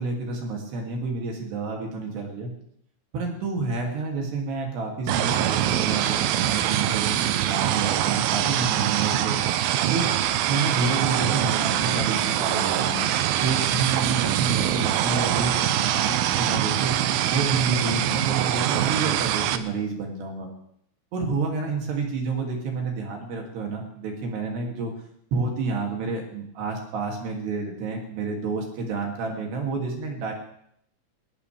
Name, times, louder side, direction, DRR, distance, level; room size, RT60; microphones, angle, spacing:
voice 1, 0.0-2.5 3.1-9.4 9.9-10.1 10.4-13.0 13.4-17.0 17.3-20.5 21.1-24.9 25.3-30.3, right 4 dB, 70° right, 0 dB, 4.7 m, -29 dB
sound 1, 5.1-19.6, right 12 dB, 85° right, 2.0 m, -24 dB
21.0 x 19.5 x 3.5 m, 0.70 s
omnidirectional pair, 5.1 m